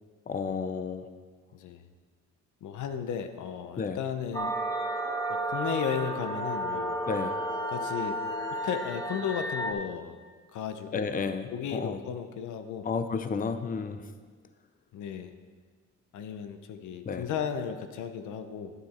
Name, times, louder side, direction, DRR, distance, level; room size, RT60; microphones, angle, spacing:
voice 1, 0.3-1.1 3.8-4.0 7.1-7.3 10.9-12.0 12.8-14.0 17.1-17.3, left 5 dB, 30° left, 10 dB, 0.6 m, -32 dB
voice 2, 2.6-4.5 5.4-7.0 7.7-8.2 8.6-10.2 10.5-11.1 11.5-12.9 14.9-15.3 16.1-18.7, left 8 dB, 80° left, 9 dB, 0.8 m, -34 dB
sound 1, 4.3-9.7, right 1 dB, 15° left, 1.4 m, -32 dB
Dog, 4.9-8.6, left 1 dB, 45° left, 2.1 m, -44 dB
9.6 x 9.4 x 4.3 m, 1.5 s
cardioid pair, 90°, 30 cm